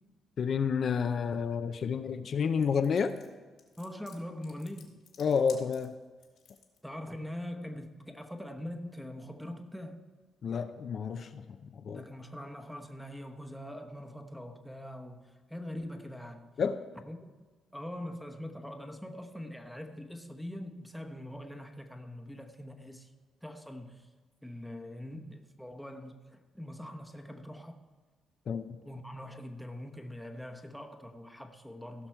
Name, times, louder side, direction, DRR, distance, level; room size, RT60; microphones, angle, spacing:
voice 1, 0.4-3.1 5.2-5.9 10.4-11.4 11.7-12.0 16.6-16.8 28.5-28.8, left 6 dB, 55° left, 0.5 m, -30 dB
sound 1, 2.6-6.8, left 7 dB, 75° left, 1.8 m, -54 dB
voice 2, 3.8-5.0 6.8-10.0 11.9-16.5 17.0-17.3 17.7-23.1 23.4-24.1 24.4-27.8 28.8-32.1, left 1 dB, ahead, 1.0 m, -43 dB
16.5 x 6.0 x 4.5 m
cardioid pair, 90°, 0 cm